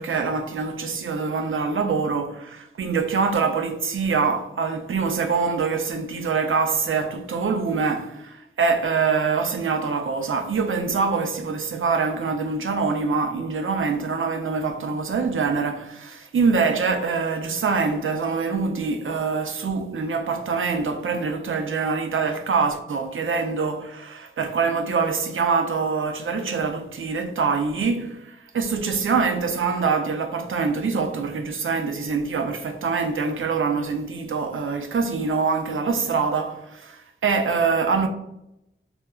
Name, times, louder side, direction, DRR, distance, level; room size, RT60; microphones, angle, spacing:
voice 1, 0.0-38.1, right 5 dB, 80° right, 0.4 m, -24 dB
3.0 x 2.3 x 2.3 m
wide cardioid pair, 60°, 21 cm